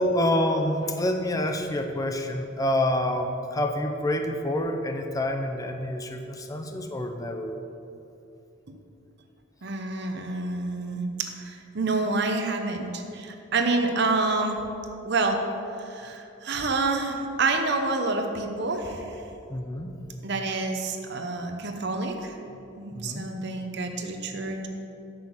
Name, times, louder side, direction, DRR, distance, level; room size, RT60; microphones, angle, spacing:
voice 1, 0.0-7.5 19.5-19.9 23.0-23.3, left 1 dB, 20° left, 5 dB, 0.6 m, -27 dB
voice 2, 9.6-14.6 15.0-15.4 15.8-19.0 20.2-22.4 22.8-24.7, right 3 dB, 60° right, 5 dB, 0.9 m, -28 dB
7.8 x 6.7 x 7.2 m, 2.7 s
head